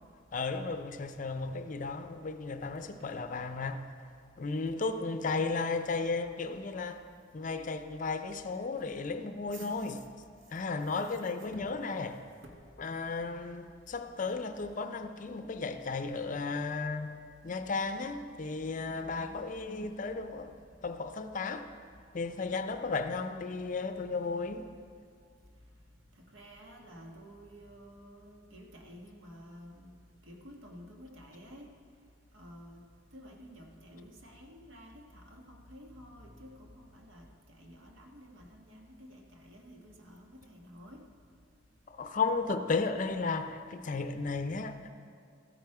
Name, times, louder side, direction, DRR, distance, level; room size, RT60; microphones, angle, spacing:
voice 1, 0.3-3.8 4.4-7.1 7.3-10.0 10.5-12.2 12.8-17.1 17.4-20.5 20.8-21.7 22.1-24.7 41.9-44.9, left 4 dB, 40° left, 0.5 m, -34 dB
voice 2, 11.1-11.6 12.4-12.5 19.1-19.5 26.3-29.9 30.3-31.7 32.3-32.8 33.1-37.3 37.5-41.0, equal, 80° right, 1.5 m, -51 dB
14.0 x 9.0 x 4.8 m
head